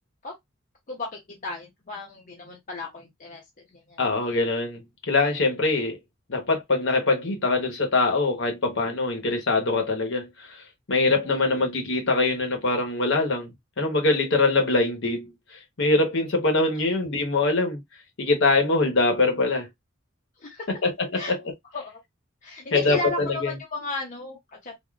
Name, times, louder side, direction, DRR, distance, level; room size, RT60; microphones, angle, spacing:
voice 1, 0.9-4.0 11.2-11.7 20.4-20.7 21.1-21.3 21.7-22.0 22.4-24.7, left 2 dB, 40° left, 0.6 m, -35 dB
voice 2, 4.0-6.0 6.3-10.6 10.9-15.3 15.8-17.8 18.2-19.7 20.8-21.4 22.7-23.5, left 3 dB, 60° left, 1.0 m, -23 dB
3.6 x 2.1 x 2.3 m
head